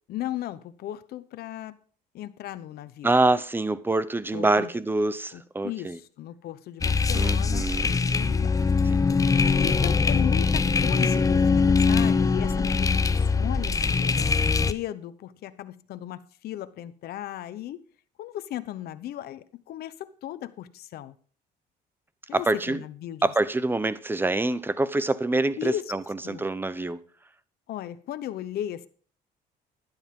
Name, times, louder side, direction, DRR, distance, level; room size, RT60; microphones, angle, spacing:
voice 1, 0.1-1.8 2.1-3.1 4.3-4.7 5.3-8.6 9.2-14.3 14.7-17.8 18.2-21.1 22.3-23.3 25.6-25.9 26.2-26.5 27.7-28.9, left 12 dB, 65° left, 0.9 m, -36 dB
voice 2, 3.0-6.0 7.1-8.0 22.3-22.8 23.2-26.0 26.3-27.0, right 2 dB, 10° right, 0.8 m, -25 dB
sound 1, 6.8-14.7, left 4 dB, 20° left, 0.7 m, -22 dB
12.0 x 10.5 x 3.7 m
cardioid pair, 110°, 17 cm